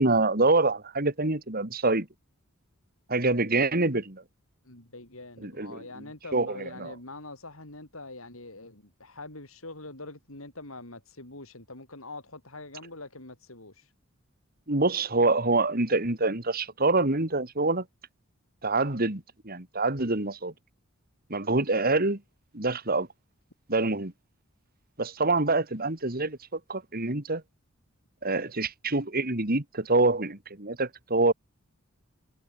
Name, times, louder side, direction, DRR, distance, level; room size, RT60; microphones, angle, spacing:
voice 1, 0.0-2.1 3.1-4.2 5.4-5.8 6.3-6.9 14.7-17.8 18.6-20.5 21.3-22.2 22.5-23.1 23.7-24.1 25.0-27.4 28.2-31.3, right 2 dB, 45° right, 2.7 m, -26 dB
voice 2, 4.6-13.9, left 2 dB, 75° left, 6.5 m, -44 dB
head